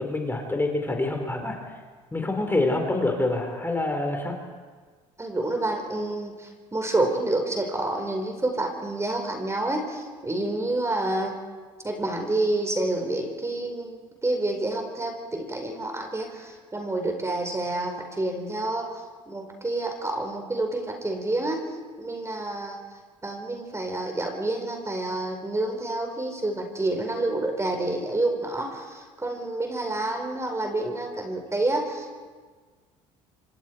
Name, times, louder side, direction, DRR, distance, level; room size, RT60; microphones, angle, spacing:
voice 1, 0.0-1.6 2.1-4.3, left 2 dB, 15° left, 2 dB, 4.5 m, -26 dB
voice 2, 5.2-11.4 11.8-21.7 22.0-22.8 23.2-32.3, right 2 dB, 15° right, 4 dB, 4.8 m, -28 dB
27.0 x 25.0 x 4.7 m, 1.5 s
hypercardioid pair, 70°, 16 cm